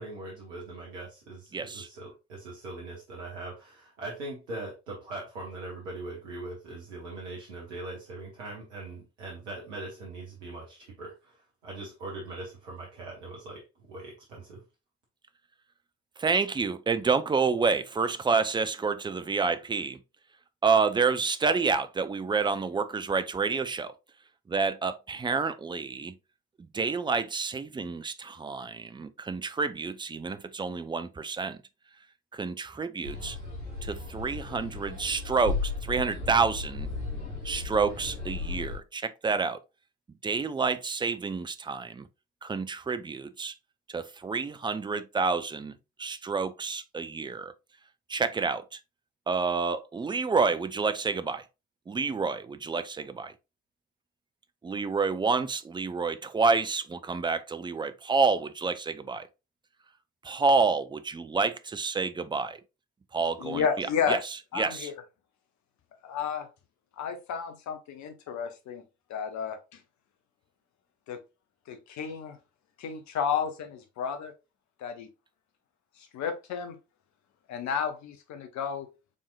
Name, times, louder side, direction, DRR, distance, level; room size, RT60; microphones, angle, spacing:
voice 1, 0.0-14.6, right 2 dB, 80° right, 1.1 m, -41 dB
voice 2, 1.5-1.9 16.2-20.0 20.6-23.9 24.5-26.1 26.7-31.6 32.3-33.4 33.8-36.9 37.4-39.6 40.2-42.1 42.4-43.5 43.9-47.5 48.1-48.8 49.3-51.4 51.9-53.3 54.6-59.3 60.2-62.6 63.1-64.2 64.5-64.9, right 4 dB, 15° right, 0.4 m, -28 dB
sound 1, 33.0-38.8, left 3 dB, 80° left, 1.9 m, -35 dB
voice 3, 63.4-64.2 64.5-64.9 66.0-66.5 67.0-68.8 69.1-69.8 71.1-71.2 71.7-72.4 72.8-74.3 74.8-75.1 76.0-76.8 77.5-78.9, left 7 dB, 50° left, 0.9 m, -32 dB
5.1 x 3.5 x 2.5 m
figure-of-eight pair, 40°, 35 cm